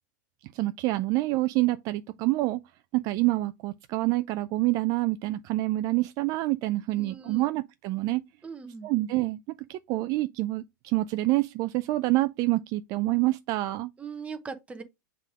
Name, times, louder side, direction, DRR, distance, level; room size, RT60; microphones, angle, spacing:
voice 1, 0.5-2.6 2.9-8.2 8.8-9.4 9.7-13.9, right 19 dB, 40° right, 0.4 m, -27 dB
voice 2, 6.9-7.4 8.4-8.9 14.0-14.8, right 5 dB, 15° right, 0.8 m, -40 dB
7.4 x 3.5 x 3.5 m
supercardioid pair, 145°, 10 cm